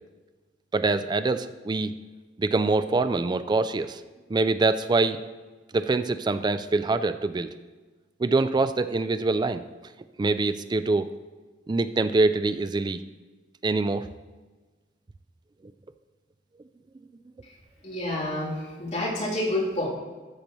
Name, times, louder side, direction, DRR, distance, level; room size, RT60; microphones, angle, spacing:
voice 1, 0.7-1.9 2.4-4.0 4.3-5.2 5.7-7.5 8.2-9.6 10.2-11.1 11.7-13.0 13.6-14.1, right 3 dB, 25° right, 12 dB, 0.3 m, -24 dB
voice 2, 17.8-19.9, left 1 dB, 40° left, -8 dB, 3.1 m, -29 dB
12.5 x 6.8 x 3.0 m, 1.3 s
head